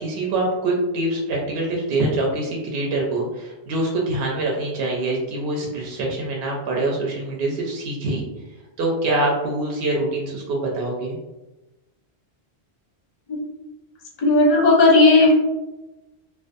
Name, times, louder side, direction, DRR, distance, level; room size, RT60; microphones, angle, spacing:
voice 1, 0.0-8.2 8.8-11.2, right 2 dB, 70° right, -2 dB, 0.7 m, -24 dB
voice 2, 14.2-15.3, left 2 dB, 45° left, -2 dB, 0.6 m, -14 dB
2.4 x 2.2 x 2.5 m, 1.0 s
omnidirectional pair, 1.1 m